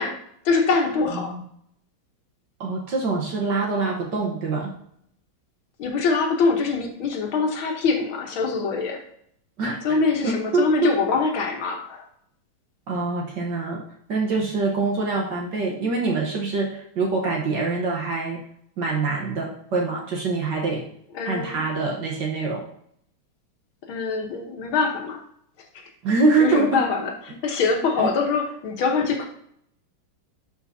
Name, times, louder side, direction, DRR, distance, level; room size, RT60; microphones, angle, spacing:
voice 1, 0.0-1.4 5.8-9.0 9.8-12.1 21.1-21.7 23.9-25.2 25.7-25.9 26.4-29.3, left 4 dB, 80° left, 2 dB, 2.0 m, -24 dB
voice 2, 2.6-4.7 9.6-9.8 10.2-10.9 12.9-13.8 14.1-18.4 18.8-20.8 21.2-22.6 26.0-26.8 28.0-28.1, right 3 dB, 65° right, -1 dB, 1.7 m, -24 dB
12.0 x 5.1 x 2.8 m, 0.69 s
omnidirectional pair, 2.2 m